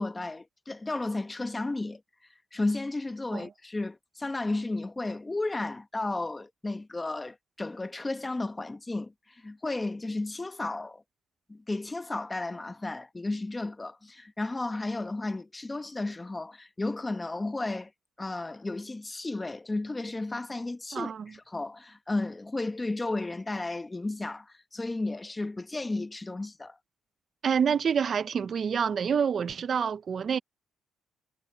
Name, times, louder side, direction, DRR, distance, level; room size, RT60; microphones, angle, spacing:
voice 1, 0.0-2.0 2.5-11.0 11.5-17.9 18.2-26.8, left 2 dB, 20° left, 1.2 m, -33 dB
voice 2, 20.9-21.3 27.4-30.4, right 7 dB, 50° right, 0.7 m, -27 dB
cardioid pair, 90°, 0 cm